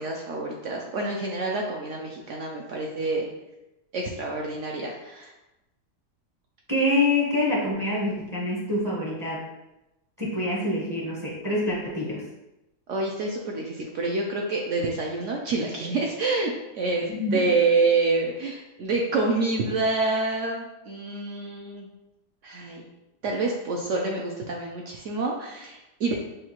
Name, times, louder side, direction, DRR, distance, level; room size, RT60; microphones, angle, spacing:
voice 1, 0.0-3.3 3.9-5.3 12.9-21.9 22.4-22.9 23.2-26.2, right 3 dB, 70° right, 0 dB, 0.7 m, -27 dB
voice 2, 6.7-9.4 10.2-12.2 17.1-17.4, left 1 dB, 20° right, -4 dB, 0.4 m, -26 dB
6.3 x 2.4 x 2.9 m, 0.96 s
omnidirectional pair, 1.8 m